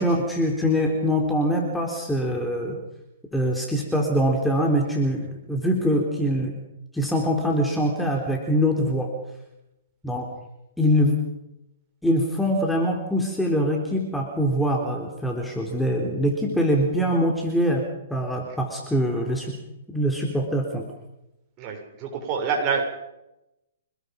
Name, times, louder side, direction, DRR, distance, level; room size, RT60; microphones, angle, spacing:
voice 1, 0.0-2.8 3.3-6.5 6.9-9.1 10.0-10.3 10.8-11.2 12.0-17.8 18.1-19.6 19.9-20.8, equal, 5° left, 1 dB, 3.9 m, -23 dB
voice 2, 21.6-22.9, right 5 dB, 35° right, 2 dB, 7.1 m, -26 dB
27.5 x 21.0 x 5.4 m, 0.90 s
hypercardioid pair, 135°, 0 cm